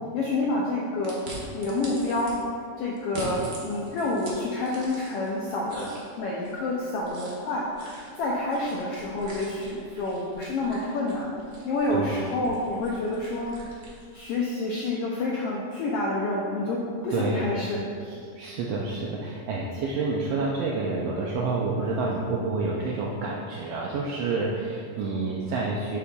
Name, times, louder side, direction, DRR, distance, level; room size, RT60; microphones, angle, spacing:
voice 1, 0.1-1.2 1.5-2.3 2.8-5.9 6.2-7.6 8.2-11.4 11.6-13.5 14.1-17.9, left 2 dB, 85° left, -4 dB, 1.3 m, -28 dB
sound 1, 1.0-2.3 3.0-5.3 5.7-14.3, right 2 dB, 70° right, 0.9 m, -43 dB
voice 2, 17.1-17.5 18.4-26.0, right 3 dB, 85° right, -2 dB, 1.4 m, -28 dB
7.1 x 6.7 x 2.3 m, 2.4 s
omnidirectional pair, 3.4 m